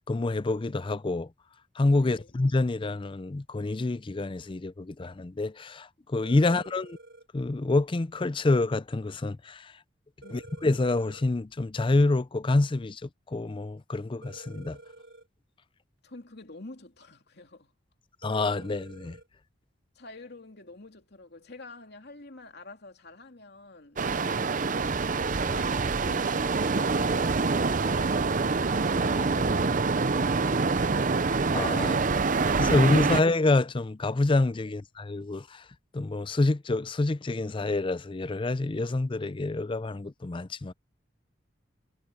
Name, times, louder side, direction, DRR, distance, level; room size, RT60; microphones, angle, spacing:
voice 1, 0.1-1.3 1.8-7.0 7.3-9.7 10.3-14.8 18.2-19.2 24.3-24.4 29.0-29.2 31.5-32.0 32.6-35.6 35.9-40.7, left 2 dB, 25° left, 0.5 m, -27 dB
sound 1, 6.2-7.3 10.2-11.3 14.2-15.3 18.2-19.3, right 2 dB, 65° right, 3.7 m, -49 dB
voice 2, 10.2-10.5 16.0-17.7 19.9-24.0 25.3-28.5 29.0-29.7 30.0-31.1 34.6-34.7, left 2 dB, 60° left, 2.9 m, -48 dB
sound 2, 24.0-33.2, right 4 dB, 45° right, 0.7 m, -26 dB
head